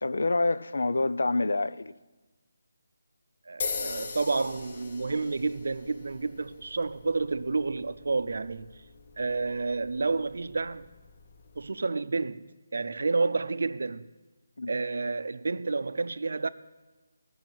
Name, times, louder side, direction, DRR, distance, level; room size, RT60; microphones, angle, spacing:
voice 1, 0.0-1.9 14.6-14.7, left 2 dB, 75° left, 0.5 m, -27 dB
voice 2, 3.5-8.8 9.2-10.9 11.6-14.1 14.7-16.5, right 3 dB, 70° right, 0.5 m, -30 dB
sound 1, 3.6-11.7, left 4 dB, 40° left, 0.9 m, -41 dB
13.5 x 6.1 x 9.0 m
figure-of-eight pair, 165°, 0 cm